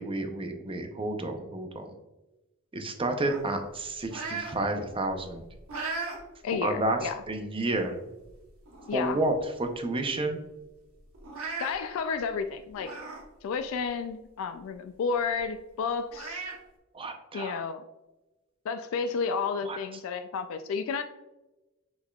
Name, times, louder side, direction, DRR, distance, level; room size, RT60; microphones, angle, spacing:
voice 1, 0.0-1.9 2.7-5.4 6.6-7.9 8.9-9.3 9.6-10.4 16.9-17.6 19.6-19.8, right 2 dB, 25° right, 5 dB, 0.6 m, -30 dB
sound 1, 3.3-4.6 5.0-6.2 6.7-6.8 7.7-7.8 8.2-8.3 8.7-9.2 9.6-9.7 10.0-10.1 11.1-11.7 12.8-13.2 13.6-13.8 15.4-15.5 16.1-16.6, right 4 dB, 80° right, 1.1 m, -37 dB
voice 2, 6.4-7.2 8.9-9.2 11.6-12.9 13.4-16.4 17.3-17.8 18.6-21.0, left 5 dB, 70° left, 8 dB, 0.3 m, -31 dB
6.3 x 3.5 x 2.3 m, 1.0 s
head